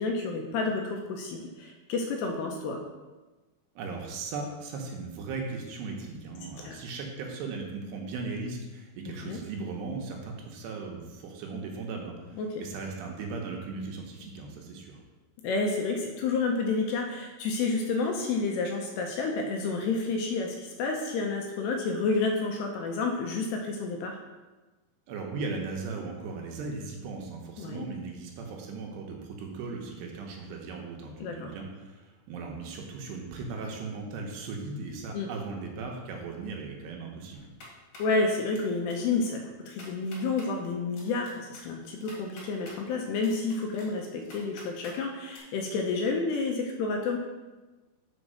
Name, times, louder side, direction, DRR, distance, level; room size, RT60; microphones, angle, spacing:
voice 1, 0.0-2.8 6.6-6.8 9.0-9.4 12.4-12.6 15.4-24.2 27.6-27.9 31.2-31.5 35.1-35.3 38.0-47.2, left 3 dB, 80° left, 2 dB, 2.6 m, -30 dB
voice 2, 3.8-15.0 25.1-37.5, right 4 dB, 75° right, 1 dB, 2.9 m, -37 dB
sound 1, 37.3-38.1 38.5-38.9 39.2-39.3 39.7-40.5 41.0-42.8 43.2-45.0 45.3-45.4, left 2 dB, 55° left, 3.1 m, -48 dB
6.4 x 5.2 x 6.3 m, 1.2 s
omnidirectional pair, 5.2 m